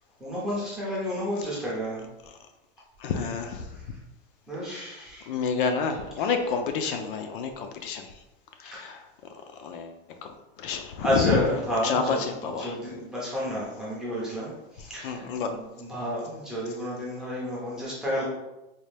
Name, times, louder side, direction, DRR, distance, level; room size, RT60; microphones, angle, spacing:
voice 1, 0.2-2.0 3.7-3.8 4.5-5.3 8.7-8.9 11.0-18.2, equal, ahead, -7 dB, 0.5 m, -31 dB
voice 2, 3.0-3.7 4.7-8.1 8.6-9.1 9.6-9.9 10.2-11.4 11.8-12.8 14.8-15.7, left 5 dB, 60° left, 6 dB, 0.4 m, -29 dB
4.2 x 2.2 x 3.2 m, 0.96 s
supercardioid pair, 175°, 30 cm